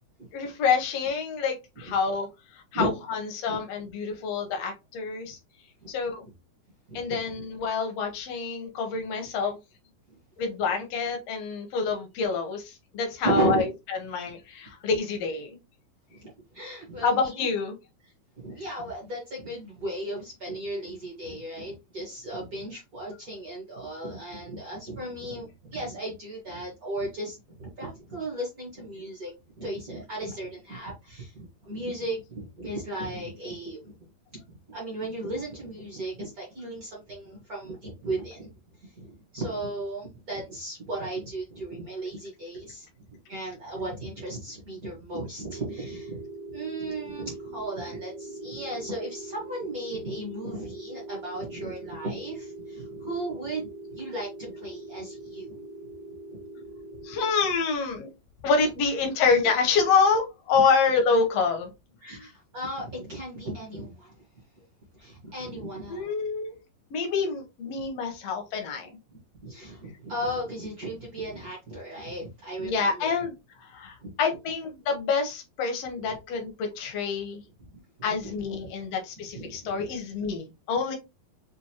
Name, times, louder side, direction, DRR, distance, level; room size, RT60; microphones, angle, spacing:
voice 1, 0.3-2.3 2.7-5.4 5.9-6.3 6.9-9.6 10.4-15.6 17.0-17.8 57.0-58.1 58.4-61.7 65.9-66.5 66.9-68.9 72.6-73.3 73.6-77.4 78.0-81.0, left 5 dB, 75° left, 1.5 m, -27 dB
voice 2, 6.9-7.4 10.1-10.2 13.2-13.7 16.1-17.5 18.3-29.3 29.6-33.9 34.3-38.5 38.8-55.6 60.5-60.6 62.0-64.1 64.9-66.1 69.1-73.2 74.0-74.1 76.0-76.2 77.7-77.8 78.2-78.3 78.6-78.7 79.3-80.0, right 1 dB, 60° right, 0.9 m, -35 dB
sound 1, 45.5-57.3, right 2 dB, 75° right, 2.0 m, -42 dB
6.1 x 2.6 x 2.8 m
omnidirectional pair, 3.9 m